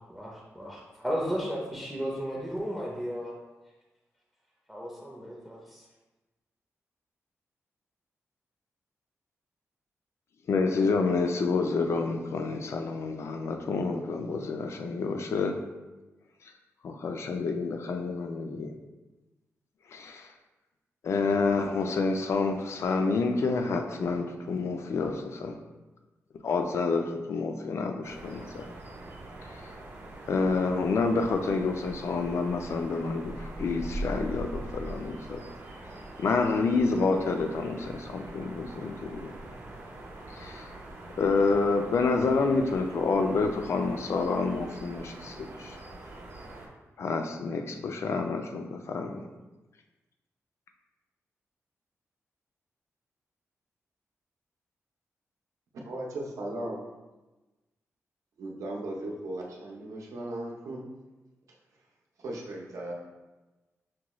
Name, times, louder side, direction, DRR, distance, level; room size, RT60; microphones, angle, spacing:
voice 1, 0.0-3.3 4.7-5.8, equal, ahead, -3 dB, 0.5 m, -34 dB
voice 2, 10.5-15.6 16.8-18.7 19.9-20.3 21.0-25.6 26.4-28.7 29.4-29.7 30.3-35.4 36.2-39.3 40.3-40.8 41.2-45.8 47.0-49.2, left 4 dB, 60° left, 5 dB, 0.4 m, -28 dB
sound 1, 28.0-46.7, right 1 dB, 45° right, 0.7 m, -43 dB
voice 3, 55.8-56.8 58.4-60.9 62.2-62.9, right 1 dB, 80° right, -2 dB, 0.7 m, -37 dB
5.9 x 2.3 x 2.9 m, 1.1 s
wide cardioid pair, 170°, 5 cm